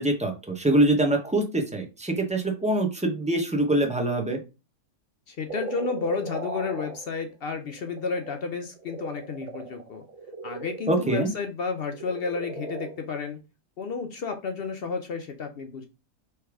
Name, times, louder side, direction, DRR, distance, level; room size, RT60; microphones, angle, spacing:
voice 1, 0.0-4.4 10.9-11.3, right 1 dB, 5° right, 3 dB, 0.7 m, -24 dB
voice 2, 5.3-10.0 10.4-13.4 13.8-15.9, left 5 dB, 60° left, 6 dB, 0.7 m, -32 dB
sound 1, 5.5-10.9 11.8-13.2, right 3 dB, 30° right, 0.9 m, -37 dB
3.4 x 3.1 x 4.7 m, 0.29 s
omnidirectional pair, 1.4 m